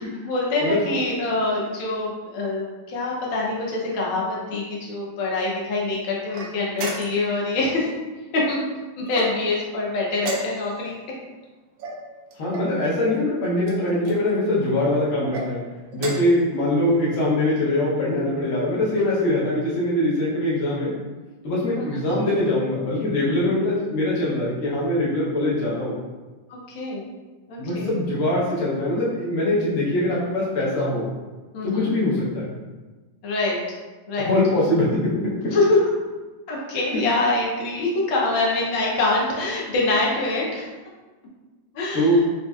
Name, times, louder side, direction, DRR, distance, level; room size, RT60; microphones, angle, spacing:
voice 1, 0.2-7.9 8.3-8.6 9.0-11.0 21.8-22.0 26.5-27.1 27.5-27.9 31.5-31.9 33.2-33.6 34.1-34.3 35.5-35.8 36.5-40.7 41.7-42.1, left 2 dB, 90° left, -3 dB, 1.5 m, -24 dB
sound 1, 6.3-7.4 9.1-9.7 10.2-10.9 11.8-12.8 13.6-14.2 15.1-15.5 15.9-16.4, right 2 dB, 90° right, 1.4 m, -33 dB
voice 2, 12.4-15.6 15.9-21.0 21.4-25.9 27.6-31.1 31.6-32.6 34.2-35.6 36.9-37.0 41.9-42.2, left 1 dB, 50° left, -7 dB, 1.2 m, -22 dB
4.2 x 2.5 x 2.3 m, 1.3 s
omnidirectional pair, 2.1 m